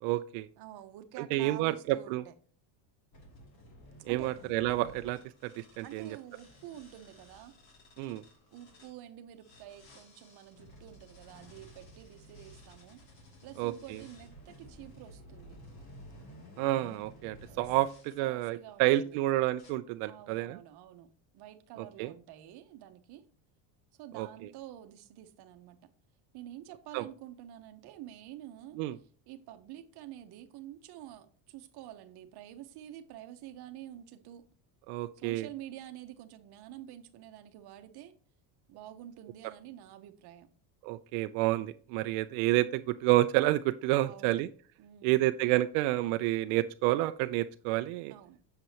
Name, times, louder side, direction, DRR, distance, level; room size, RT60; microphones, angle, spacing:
voice 1, 0.0-0.5 1.2-2.2 4.1-6.2 8.0-8.2 13.6-14.0 16.6-20.6 22.0-22.1 24.1-24.3 26.9-27.0 28.8-28.9 34.9-35.5 40.8-44.5 45.0-48.1, right 16 dB, 85° right, 0.6 m, -29 dB
voice 2, 0.6-2.3 4.1-4.4 5.8-7.6 8.5-13.0 13.4-15.6 17.5-17.6 18.2-19.2 20.1-23.2 24.0-25.9 26.3-28.8 29.3-34.5 35.1-38.1 38.7-40.5 44.0-44.4 44.8-45.3 48.1-48.4, right 12 dB, 50° right, 1.0 m, -48 dB
sound 1, 3.1-8.9 9.4-18.2 18.8-19.2 19.6-19.7, equal, 50° left, 2.7 m, -54 dB
7.6 x 6.8 x 2.8 m
cardioid pair, 155°, 48 cm